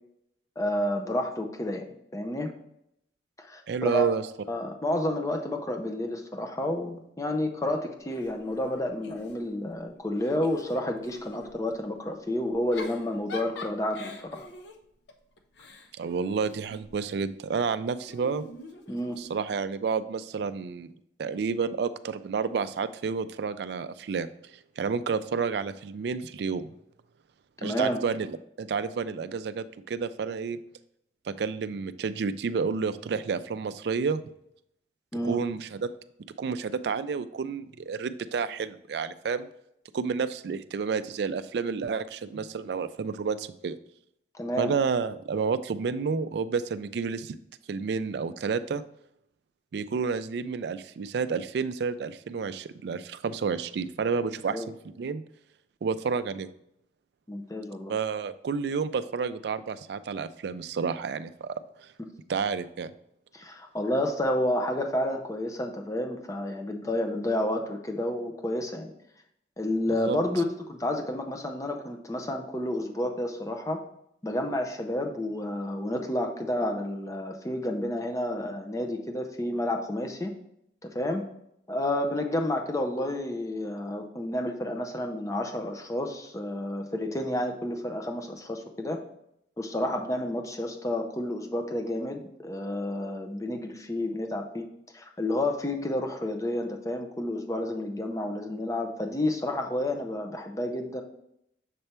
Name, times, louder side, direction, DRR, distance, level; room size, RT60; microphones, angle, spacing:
voice 1, 0.6-1.8 2.1-2.5 3.4-4.1 4.5-14.4 18.9-19.2 27.6-28.0 35.1-35.4 44.3-44.7 54.5-54.7 57.3-57.9 63.3-68.9 69.6-73.8 74.2-80.3 80.8-81.2 81.7-89.0 89.6-94.7 94.9-101.0, left 1 dB, 20° left, 4 dB, 0.6 m, -30 dB
voice 2, 3.7-4.2 16.0-18.4 19.2-20.9 21.2-24.3 24.8-26.7 27.6-30.6 31.3-34.2 35.2-35.9 36.4-39.5 39.9-43.8 44.6-47.4 47.7-48.8 49.7-54.6 55.0-55.2 55.8-56.5 57.9-61.5 61.8-61.9 62.3-62.9 70.0-70.2, right 5 dB, 65° right, 13 dB, 0.3 m, -30 dB
Giggle / Chuckle chortle, 8.1-9.7 10.1-11.5 12.5-17.0 18.1-19.5, left 2 dB, 75° left, 0.7 m, -45 dB
6.7 x 3.3 x 4.3 m, 0.76 s
head